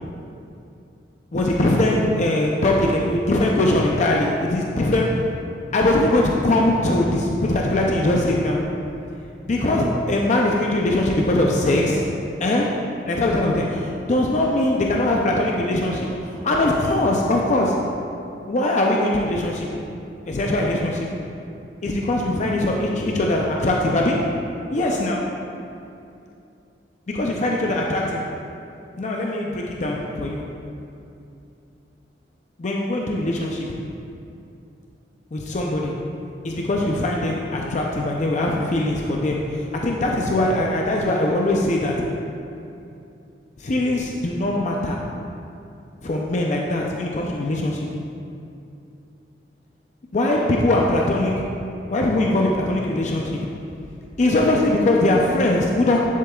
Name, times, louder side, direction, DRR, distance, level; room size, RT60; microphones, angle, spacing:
voice 1, 1.3-5.2 5.7-8.7 9.5-12.1 12.4-12.8 13.0-17.8 18.5-19.8 20.3-21.1 21.8-24.4 24.7-25.3 27.1-28.3 29.0-30.5 32.6-33.8 35.3-36.0 36.4-42.2 43.6-45.0 46.0-47.9 50.1-51.5 51.9-53.5 54.2-56.0, left 1 dB, 45° left, -1 dB, 0.5 m, -21 dB
10.5 x 7.4 x 2.3 m, 2.7 s
head